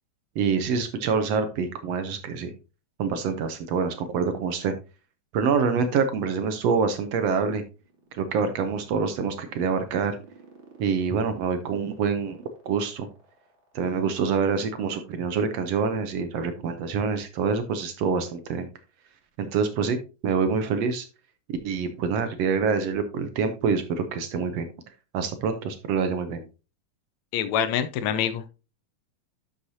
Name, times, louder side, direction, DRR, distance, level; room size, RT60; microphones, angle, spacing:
voice 1, 0.3-2.5 3.0-4.7 5.3-7.6 8.1-10.2 10.8-12.4 12.6-13.1 13.7-18.7 19.4-21.1 21.5-24.7 25.1-26.4, right 5 dB, 70° right, 9 dB, 1.7 m, -26 dB
sound 1, 7.7-14.2, right 4 dB, 40° right, 3.0 m, -50 dB
voice 2, 27.3-28.5, left 9 dB, 75° left, 11 dB, 1.8 m, -25 dB
11.5 x 6.5 x 2.7 m, 0.32 s
omnidirectional pair, 3.4 m